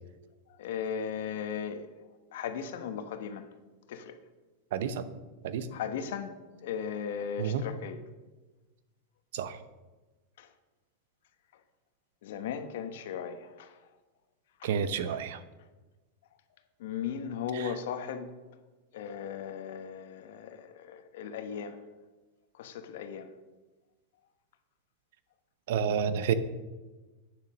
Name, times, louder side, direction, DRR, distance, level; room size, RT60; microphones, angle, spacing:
voice 1, 0.6-1.9 2.3-3.5 3.9-4.1 5.7-6.3 6.6-8.0 10.4-10.5 12.2-13.7 14.6-14.7 16.8-18.3 18.9-21.8 22.6-23.3, left 7 dB, 70° left, 1.1 m, -37 dB
voice 2, 4.7-5.0 5.4-5.7 7.4-7.6 9.3-9.6 14.6-15.4 17.5-17.7 25.7-26.3, right 8 dB, 70° right, 0.8 m, -30 dB
9.5 x 6.9 x 6.3 m
hypercardioid pair, 115°, 0 cm